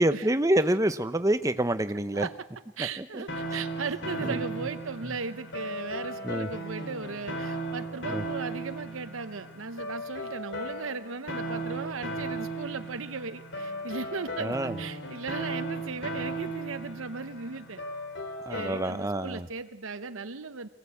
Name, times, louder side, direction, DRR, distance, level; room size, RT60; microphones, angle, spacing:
voice 1, 0.0-2.3 2.8-3.2 4.2-4.4 6.2-6.5 8.1-8.2 14.4-14.8 18.4-19.5, right 1 dB, 15° right, 11 dB, 0.8 m, -27 dB
voice 2, 2.8-17.8 18.5-20.7, right 4 dB, 80° right, 10 dB, 0.9 m, -37 dB
sound 1, 3.3-19.2, right 1 dB, 60° left, 3.6 m, -36 dB
25.0 x 17.5 x 8.5 m, 1.1 s
head